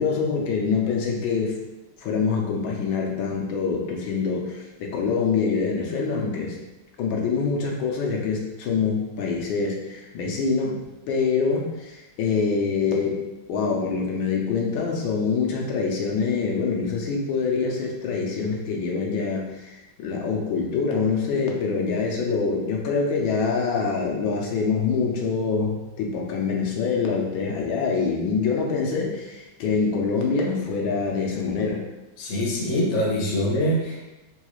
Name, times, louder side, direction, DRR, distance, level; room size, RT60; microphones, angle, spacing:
voice 1, 0.0-1.6 2.0-6.6 7.0-10.8 11.1-13.2 13.5-31.8, left 5 dB, 90° left, -1 dB, 1.5 m, -25 dB
voice 2, 32.2-34.0, equal, 55° left, -2 dB, 0.8 m, -24 dB
3.9 x 2.3 x 3.0 m, 1.0 s
omnidirectional pair, 2.1 m